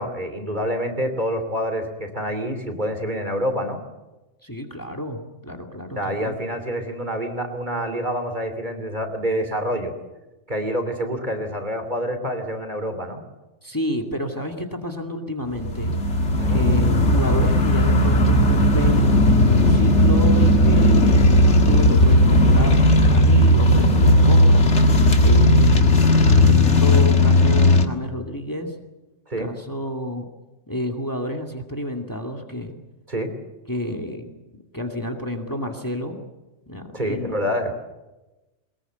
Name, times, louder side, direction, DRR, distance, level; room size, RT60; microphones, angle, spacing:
voice 1, 0.0-3.8 6.0-9.9 10.5-13.2 16.4-16.6 29.3-29.5 33.1-33.3 36.9-37.8, equal, 35° right, 7 dB, 3.1 m, -27 dB
voice 2, 4.4-6.4 13.6-15.9 16.5-19.1 19.4-24.7 25.2-25.8 26.4-28.7 29.4-30.3 30.7-32.7 33.7-34.3 34.7-36.2 36.7-37.4, equal, 15° left, 3 dB, 2.3 m, -30 dB
sound 1, 15.6-27.8, left 1 dB, 60° left, 2.1 m, -15 dB
22.5 x 21.0 x 8.1 m, 1.1 s
omnidirectional pair, 1.3 m